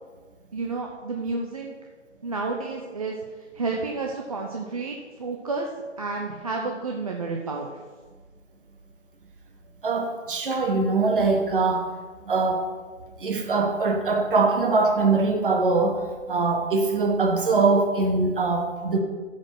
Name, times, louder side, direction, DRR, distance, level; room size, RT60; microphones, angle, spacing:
voice 1, 0.5-1.7 2.2-3.2 3.5-5.7 6.0-7.8, right 3 dB, 30° right, 0 dB, 0.7 m, -30 dB
voice 2, 9.8-11.9 12.2-12.6 13.2-19.0, right 3 dB, 45° right, 4 dB, 1.6 m, -22 dB
13.5 x 5.1 x 6.1 m, 1.4 s
figure-of-eight pair, 155°, 37 cm